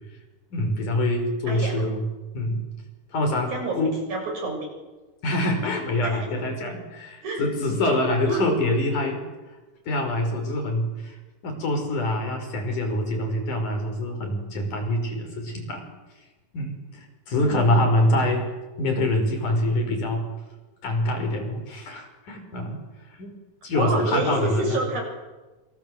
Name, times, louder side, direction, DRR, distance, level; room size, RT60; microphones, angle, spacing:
voice 1, 0.5-2.0 2.3-2.6 3.1-4.0 5.2-9.2 9.9-11.2 11.4-15.8 16.5-20.3 20.8-22.8 23.2-23.3 23.6-24.8, left 1 dB, 65° left, 5 dB, 6.7 m, -25 dB
voice 2, 3.5-3.8 4.1-4.7 6.0-6.3 7.2-7.4 8.3-8.5 17.4-17.8 23.7-25.0, right 2 dB, 60° right, 2 dB, 8.7 m, -28 dB
27.5 x 27.5 x 7.9 m, 1.2 s
omnidirectional pair, 3.8 m